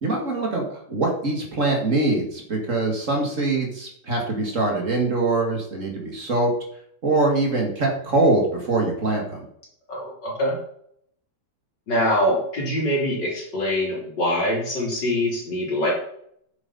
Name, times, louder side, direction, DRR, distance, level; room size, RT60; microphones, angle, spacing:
voice 1, 0.0-6.5 7.0-9.4, right 2 dB, 45° right, 1 dB, 2.3 m, -23 dB
voice 2, 9.9-10.5 11.9-15.9, left 1 dB, 65° left, -4 dB, 4.2 m, -24 dB
9.1 x 7.9 x 4.2 m, 0.69 s
omnidirectional pair, 2.0 m